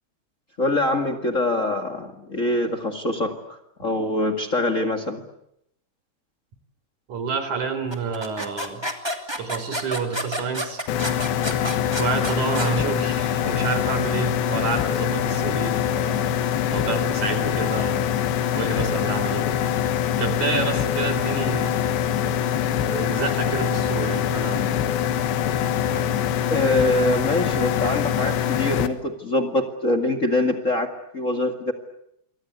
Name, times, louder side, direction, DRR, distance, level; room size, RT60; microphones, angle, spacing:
voice 1, 0.6-5.2 26.5-31.7, left 2 dB, 45° left, 6 dB, 0.9 m, -24 dB
voice 2, 7.1-8.8 9.4-10.8 12.0-16.3 16.7-18.1 18.5-19.5 20.2-22.4 22.8-24.7 25.8-26.1, right 5 dB, 45° right, 10 dB, 5.0 m, -29 dB
sound 1, 7.9-12.8, equal, 10° right, 1.4 m, -30 dB
sound 2, 10.9-28.9, left 9 dB, 75° left, 3.5 m, -24 dB
28.0 x 24.0 x 8.2 m, 0.76 s
omnidirectional pair, 5.2 m